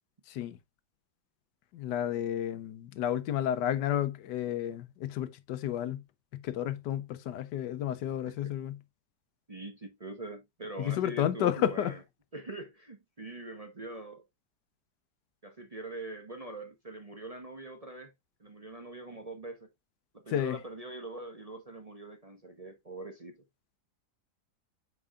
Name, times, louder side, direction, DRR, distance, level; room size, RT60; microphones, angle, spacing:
voice 1, 0.3-0.6 1.7-6.0 6.3-8.8 10.8-11.9 20.3-20.6, left 11 dB, 90° left, 1.3 m, -31 dB
voice 2, 9.5-12.0 12.3-14.2 15.4-18.1 18.4-19.7 20.1-23.4, right 2 dB, 30° right, 0.8 m, -43 dB
8.5 x 4.7 x 2.4 m
omnidirectional pair, 1.8 m